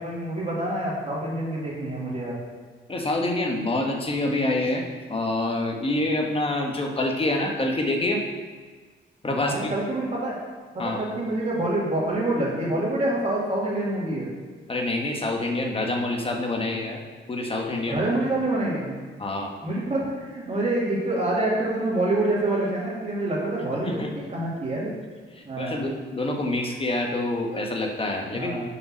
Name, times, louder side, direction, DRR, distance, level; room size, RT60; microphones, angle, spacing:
voice 1, 0.0-2.4 9.4-10.4 10.7-14.3 17.9-18.9 19.6-24.9 25.5-25.8 28.3-28.7, right 1 dB, 35° right, -6 dB, 2.2 m, -26 dB
voice 2, 2.9-4.8 5.1-8.2 9.2-9.7 10.8-11.0 14.7-17.0 17.3-18.0 19.2-19.5 23.8-24.1 25.3-28.7, left 2 dB, 30° left, 1 dB, 1.2 m, -26 dB
6.4 x 5.3 x 6.1 m, 1.4 s
cardioid pair, 110°, 20 cm